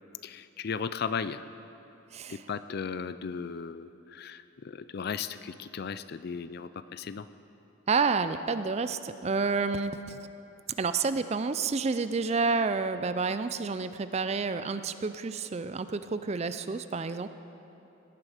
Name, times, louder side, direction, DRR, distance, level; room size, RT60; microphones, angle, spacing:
voice 1, 0.2-1.4 2.3-7.3, left 6 dB, 45° left, 13 dB, 0.4 m, -36 dB
voice 2, 2.1-2.5 7.9-10.2 10.8-17.3, right 4 dB, 30° right, 11 dB, 0.4 m, -29 dB
18.0 x 11.0 x 5.0 m, 3.0 s
head